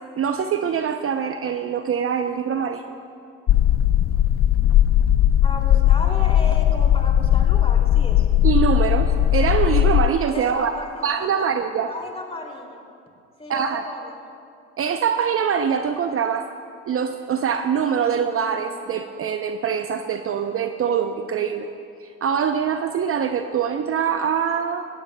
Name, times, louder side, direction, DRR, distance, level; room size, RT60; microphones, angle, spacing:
voice 1, 0.2-2.8 8.4-10.7 11.0-11.9 13.5-13.8 14.8-16.5 16.9-21.7 22.0-24.9, right 7 dB, 40° right, 7 dB, 0.7 m, -23 dB
sound 1, 3.5-10.1, left 11 dB, 40° left, 0.5 m, -18 dB
voice 2, 5.4-8.3 10.3-11.5 11.9-12.8 13.4-14.1, left 2 dB, 15° left, 0 dB, 2.7 m, -34 dB
16.5 x 16.5 x 2.3 m, 2.4 s
hypercardioid pair, 65°, 36 cm